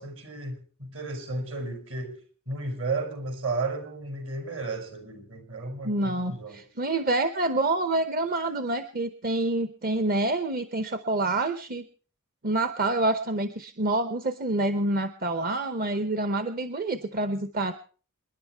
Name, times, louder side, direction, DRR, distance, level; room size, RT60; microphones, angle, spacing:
voice 1, 0.0-2.1 2.5-6.6, right 3 dB, 65° right, 5 dB, 5.2 m, -33 dB
voice 2, 5.8-11.9 12.4-17.7, right 2 dB, 45° right, 10 dB, 0.9 m, -27 dB
28.0 x 10.5 x 4.5 m, 0.42 s
head